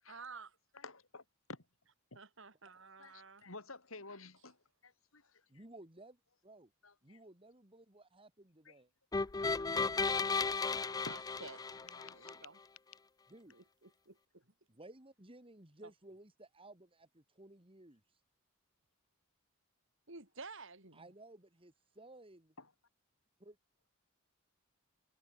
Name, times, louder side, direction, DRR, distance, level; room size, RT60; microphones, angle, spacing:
voice 1, 0.1-0.5 2.2-3.5 10.8-12.6 13.5-14.4 20.1-21.1, right 4 dB, 65° right, 4.0 m, -52 dB
voice 2, 0.7-1.7 2.1-2.2 3.0-5.4 6.8-7.2 8.6-8.8 9.2-9.3 9.6-9.7 11.1-11.2 11.7-12.4 22.6-22.7, left 3 dB, 75° left, 6.6 m, -52 dB
voice 3, 5.5-6.7 7.0-8.9 13.3-13.5 14.7-18.0 20.9-22.5 23.4-23.6, right 1 dB, 25° right, 2.6 m, -57 dB
sound 1, 9.1-12.4, left 4 dB, 20° left, 0.4 m, -35 dB
head